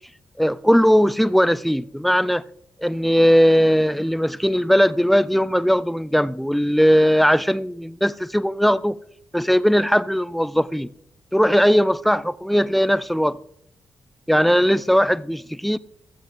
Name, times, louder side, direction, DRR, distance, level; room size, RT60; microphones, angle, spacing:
voice 1, 0.4-2.4 2.8-9.0 9.3-10.9 11.3-13.4 14.3-15.8, equal, ahead, 0.4 m, -18 dB
13.5 x 7.5 x 3.4 m
cardioid pair, 60°, 7 cm